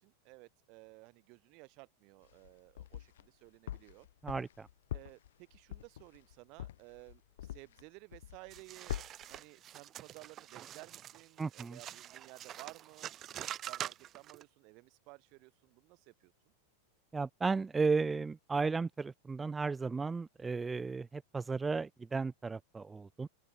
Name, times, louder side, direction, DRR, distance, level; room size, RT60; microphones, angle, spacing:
voice 1, 0.0-4.1 4.9-8.9 9.3-13.1 13.4-16.3, right 28 dB, 45° right, 2.4 m, -55 dB
sound 1, 2.2-3.3 3.7-7.9 8.1-8.6 8.9-9.4, left 12 dB, 85° left, 0.5 m, -43 dB
voice 2, 4.2-4.7 11.4-11.8 17.1-23.3, right 4 dB, 10° right, 0.7 m, -34 dB
sound 2, 8.5-14.4, right 11 dB, 30° right, 3.3 m, -45 dB
supercardioid pair, 150°, 0 cm